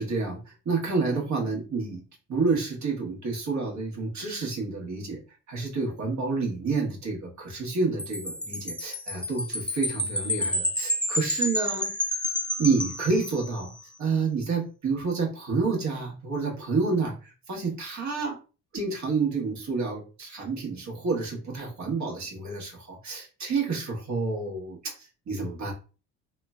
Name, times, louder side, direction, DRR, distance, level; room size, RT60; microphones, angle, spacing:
voice 1, 0.0-2.0 2.3-5.2 5.5-11.9 12.6-13.7 14.0-18.4 18.7-25.7, right 4 dB, 50° right, -1 dB, 1.2 m, -29 dB
Wind chime, 8.0-13.7, left 1 dB, 5° left, 0.5 m, -30 dB
3.1 x 2.1 x 2.2 m, 0.35 s
hypercardioid pair, 55°, 37 cm